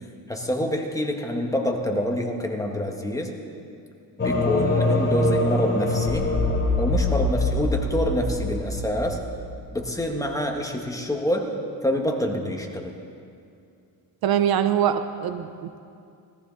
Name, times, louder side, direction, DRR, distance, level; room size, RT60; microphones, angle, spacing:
voice 1, 0.3-3.3 4.2-6.3 6.8-9.2 9.7-11.5 11.8-12.9, left 1 dB, 10° left, 1 dB, 1.8 m, -26 dB
sound 1, 4.2-9.9, left 2 dB, 25° left, 3.4 m, -24 dB
voice 2, 14.2-15.8, right 9 dB, 60° right, 10 dB, 0.8 m, -23 dB
20.0 x 14.0 x 4.2 m, 2.5 s
cardioid pair, 95°, 42 cm